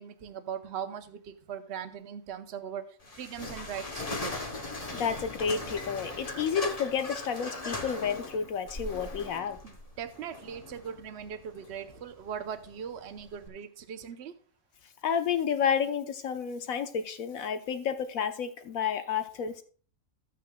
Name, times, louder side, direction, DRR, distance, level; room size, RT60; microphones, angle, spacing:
voice 1, 0.0-4.3 9.6-14.3, right 8 dB, 55° right, 9 dB, 0.9 m, -40 dB
sound 1, 3.0-13.5, left 2 dB, 30° left, 0.9 m, -39 dB
voice 2, 4.9-9.6 15.0-19.6, left 7 dB, 75° left, 8 dB, 1.3 m, -30 dB
13.0 x 8.6 x 2.2 m, 0.43 s
omnidirectional pair, 1.5 m